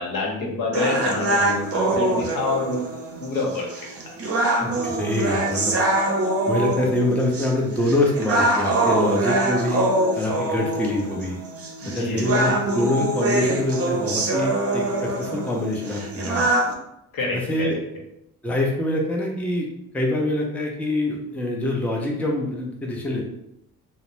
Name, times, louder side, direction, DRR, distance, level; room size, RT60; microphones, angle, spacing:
voice 1, 0.0-2.8 3.2-3.7 11.8-12.3 17.1-17.8, left 3 dB, 65° left, -1 dB, 0.9 m, -27 dB
sound 1, 0.7-16.7, right 2 dB, 40° right, 0.7 m, -24 dB
voice 2, 4.6-5.7 6.5-9.9 10.2-11.4 11.9-16.5 17.3-17.8 18.4-19.7 19.9-23.3, left 1 dB, 5° left, -1 dB, 0.5 m, -25 dB
2.4 x 2.0 x 3.0 m, 0.80 s
supercardioid pair, 65°, 37 cm